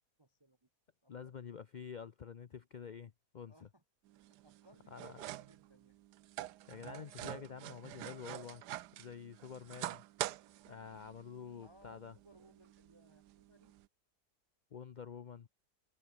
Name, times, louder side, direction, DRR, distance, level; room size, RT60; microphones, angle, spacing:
voice 1, 0.2-0.7 1.0-1.6 3.5-3.8 4.2-6.0 11.6-13.7, right 1 dB, 15° right, 1.2 m, -65 dB
voice 2, 1.1-3.7 4.9-5.2 6.7-8.6 9.0-10.0 10.7-12.1 14.7-15.5, left 7 dB, 70° left, 0.4 m, -48 dB
sound 1, 4.1-13.9, right 15 dB, 90° right, 1.2 m, -47 dB
omnidirectional pair, 1.7 m